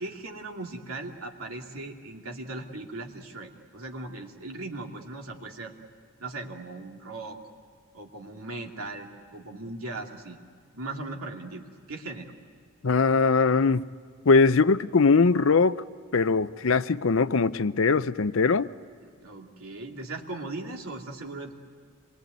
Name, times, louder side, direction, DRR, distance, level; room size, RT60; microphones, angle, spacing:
voice 1, 0.0-5.7 6.2-7.4 7.9-10.4 10.7-12.3 19.0-21.5, right 2 dB, 85° right, 2.7 m, -38 dB
voice 2, 12.8-13.8 14.3-15.8 16.1-18.7, left 4 dB, 70° left, 0.6 m, -21 dB
27.0 x 22.0 x 9.4 m
head